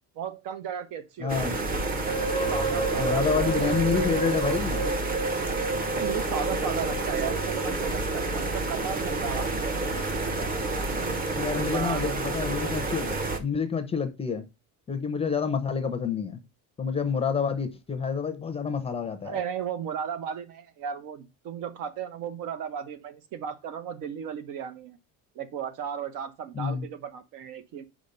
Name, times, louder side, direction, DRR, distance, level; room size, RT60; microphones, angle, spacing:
voice 1, 0.1-1.7 2.3-3.5 3.8-3.9 5.9-11.0 11.5-12.2 19.2-25.0 25.3-27.8, right 8 dB, 65° right, 1.2 m, -35 dB
voice 2, 1.2-1.6 3.0-4.9 11.3-13.1 13.4-14.5 14.9-16.4 16.8-19.4 26.6-26.9, left 6 dB, 15° left, 0.6 m, -28 dB
sound 1, 1.3-13.4, right 2 dB, 25° right, 1.0 m, -29 dB
sound 2, 2.0-8.0, right 3 dB, 80° right, 4.0 m, -32 dB
5.1 x 5.0 x 5.4 m
cardioid pair, 165°, 35 cm